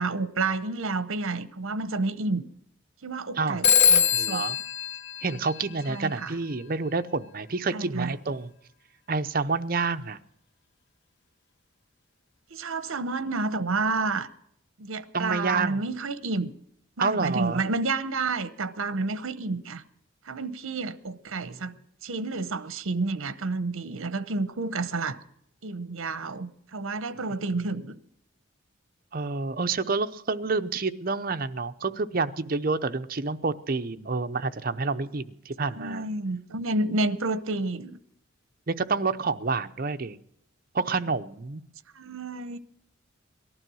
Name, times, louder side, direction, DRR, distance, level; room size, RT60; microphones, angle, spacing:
voice 1, 0.0-2.4 3.0-4.4 5.9-6.4 7.7-8.1 12.5-14.3 14.8-16.5 17.0-19.8 20.2-21.7 22.0-25.2 25.6-28.0 35.7-38.0 41.9-42.6, right 3 dB, 75° right, 0.8 m, -30 dB
voice 2, 3.4-3.7 4.1-4.6 5.2-8.5 9.1-10.2 15.1-15.8 17.0-17.6 21.4-21.6 29.1-36.1 38.7-40.2 40.7-41.6, right 4 dB, 45° right, 0.7 m, -28 dB
Telephone, 3.6-6.1, left 8 dB, 50° left, 0.8 m, -23 dB
18.5 x 12.0 x 6.2 m
head